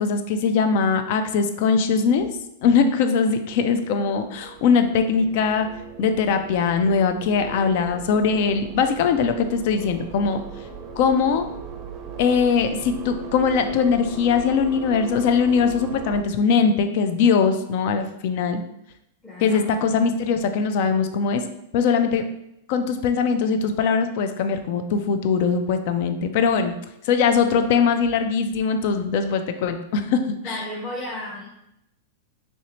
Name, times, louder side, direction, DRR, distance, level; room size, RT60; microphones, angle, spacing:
voice 1, 0.0-2.3 2.6-5.7 6.0-10.4 11.0-11.5 12.2-18.6 19.4-21.4 21.7-22.2 22.7-26.7 27.0-30.6, left 5 dB, 60° left, 8 dB, 0.4 m, -21 dB
sound 1, 2.5-16.2, right 7 dB, 35° right, 0.5 m, -39 dB
voice 2, 19.2-19.6 30.4-31.5, left 1 dB, 10° left, -6 dB, 0.6 m, -33 dB
3.2 x 2.7 x 2.9 m, 0.82 s
hypercardioid pair, 110°, 0 cm